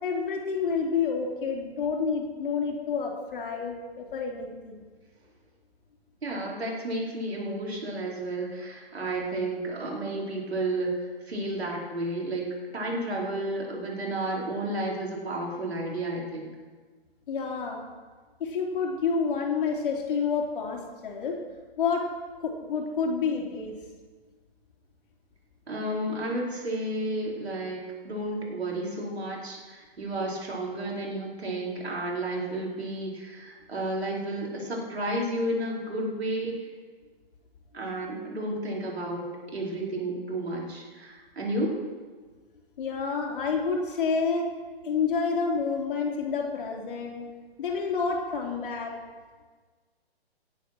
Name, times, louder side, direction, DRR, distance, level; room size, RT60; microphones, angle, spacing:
voice 1, 0.0-4.8 17.3-17.8 18.4-21.4 21.8-22.1 22.4-23.8 42.8-44.5 44.8-47.3 47.6-48.9, left 5 dB, 55° left, 0 dB, 3.4 m, -29 dB
voice 2, 6.2-12.4 12.7-16.5 25.7-36.7 37.7-41.8, right 1 dB, 80° right, -3 dB, 4.8 m, -32 dB
17.5 x 8.3 x 6.1 m, 1.4 s
hypercardioid pair, 140°, 31 cm